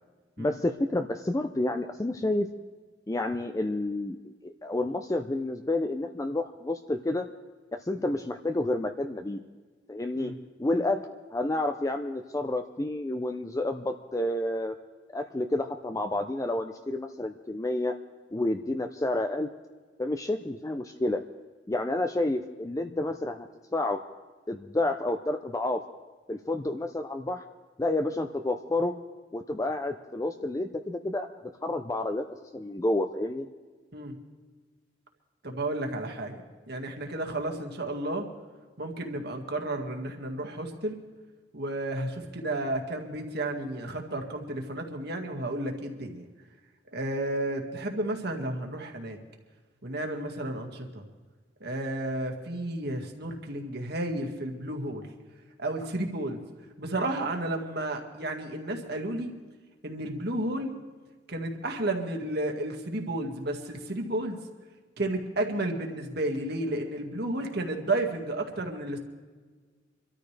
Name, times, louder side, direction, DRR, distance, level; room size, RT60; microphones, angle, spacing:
voice 1, 0.4-2.5 3.1-4.2 4.4-7.3 7.8-9.4 9.9-10.3 10.6-14.8 15.1-18.0 18.3-19.5 20.0-21.2 21.7-24.0 24.5-25.8 26.3-27.4 27.8-29.0 29.3-31.3 31.6-33.5, left 2 dB, 20° left, 6 dB, 0.5 m, -30 dB
voice 2, 35.4-38.3 38.8-41.0 41.5-46.3 46.9-49.2 49.8-51.0 51.6-55.1 55.6-56.4 56.8-59.3 59.8-60.7 61.3-64.4 65.0-69.0, right 1 dB, 60° right, 3 dB, 1.9 m, -32 dB
25.5 x 13.0 x 3.3 m, 1.4 s
head